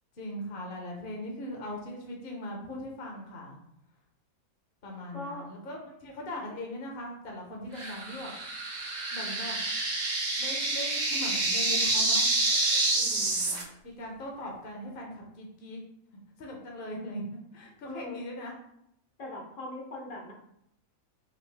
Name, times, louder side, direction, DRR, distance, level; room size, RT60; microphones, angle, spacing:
voice 1, 0.2-3.6 4.8-8.4 9.1-9.6 10.4-12.2 13.8-15.8 16.4-17.2 17.5-18.5, left 1 dB, 45° left, 0 dB, 1.0 m, -39 dB
voice 2, 5.1-5.5 12.9-13.6 17.8-18.2 19.2-20.3, left 1 dB, 65° left, -1 dB, 1.4 m, -41 dB
sound 1, 7.8-13.6, right 2 dB, 40° right, 0.7 m, -28 dB
5.0 x 2.6 x 3.4 m, 0.76 s
omnidirectional pair, 1.4 m